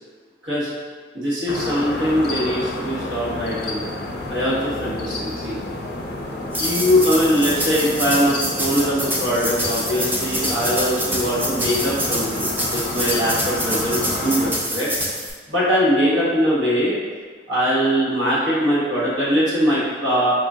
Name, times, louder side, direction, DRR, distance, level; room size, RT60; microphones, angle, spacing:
voice 1, 1.1-3.8 4.3-5.6 6.5-14.9 15.5-17.0 17.5-20.3, equal, 85° right, -8 dB, 1.4 m, -21 dB
sound 1, 1.5-14.5, left 2 dB, 60° left, 0.5 m, -30 dB
sound 2, 6.5-15.3, equal, 10° right, 0.4 m, -26 dB
4.9 x 2.7 x 2.4 m, 1.5 s
head